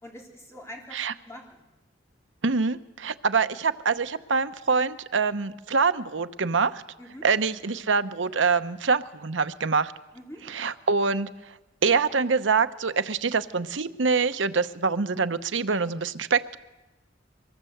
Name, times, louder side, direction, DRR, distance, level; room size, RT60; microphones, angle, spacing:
voice 1, 0.0-1.0 1.2-1.6 7.0-7.3 10.1-10.4, equal, 15° left, 0 dB, 3.4 m, -44 dB
voice 2, 2.4-6.8 7.2-9.9 10.4-11.3 11.8-16.6, right 4 dB, 85° right, 11 dB, 0.9 m, -25 dB
24.0 x 20.5 x 7.9 m, 1.1 s
head